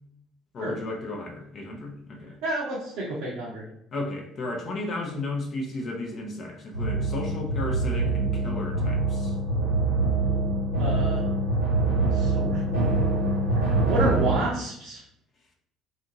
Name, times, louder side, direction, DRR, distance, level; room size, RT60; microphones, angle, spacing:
voice 1, 0.5-2.4 3.9-9.3, left 2 dB, 40° left, 1 dB, 0.5 m, -34 dB
voice 2, 2.4-3.7 10.8-11.2 12.1-12.9 13.5-15.0, right 1 dB, 60° right, -5 dB, 0.6 m, -30 dB
sound 1, 6.7-14.4, right 2 dB, 85° right, 1.0 m, -24 dB
2.6 x 2.5 x 2.7 m, 0.73 s
figure-of-eight pair, 55°, 0 cm